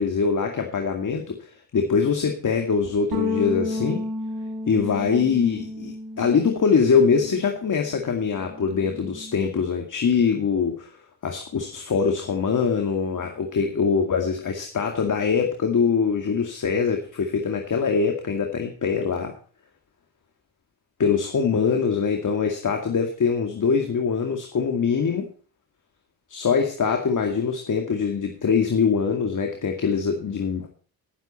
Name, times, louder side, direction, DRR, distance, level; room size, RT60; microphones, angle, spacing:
voice 1, 0.0-4.1 4.7-10.9 11.2-19.3 21.0-25.3 26.3-30.7, left 6 dB, 45° left, 3 dB, 2.3 m, -23 dB
sound 1, 3.1-7.7 8.0-9.4, left 2 dB, 55° right, 4.3 m, -32 dB
18.0 x 7.3 x 4.4 m, 0.42 s
supercardioid pair, 75°, 45 cm